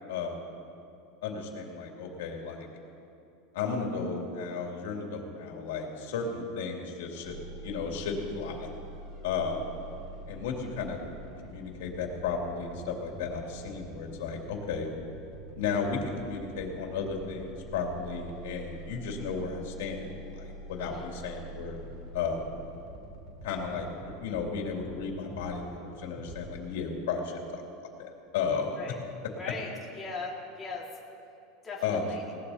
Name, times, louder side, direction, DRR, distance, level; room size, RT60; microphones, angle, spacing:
voice 1, 0.1-0.5 1.2-2.7 3.5-7.4 7.6-8.7 9.2-9.7 10.3-11.0 11.4-14.9 15.6-21.8 22.1-22.6 23.4-27.6 28.0-28.8 31.8-32.1, left 5 dB, 85° left, 0 dB, 2.6 m, -34 dB
sound 1, 7.2-25.0 25.3-25.6 26.2-26.6, right 1 dB, 50° right, 3.6 m, -45 dB
voice 2, 29.4-30.9 31.6-32.2, left 3 dB, 10° left, -5 dB, 2.1 m, -39 dB
20.5 x 17.0 x 2.8 m, 2.7 s
supercardioid pair, 150°, 0 cm